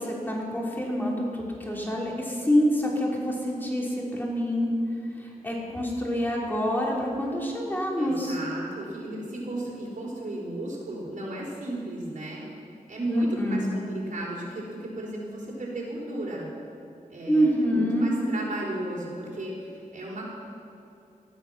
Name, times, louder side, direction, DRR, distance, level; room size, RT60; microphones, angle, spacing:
voice 1, 0.0-4.7 5.2-8.4 13.1-13.7 17.3-18.1, equal, 15° left, -3 dB, 3.3 m, -26 dB
voice 2, 8.0-12.5 12.9-16.5 17.1-20.3, right 1 dB, 65° right, -4 dB, 4.6 m, -35 dB
17.0 x 14.0 x 6.0 m, 2.6 s
wide cardioid pair, 135°, 14 cm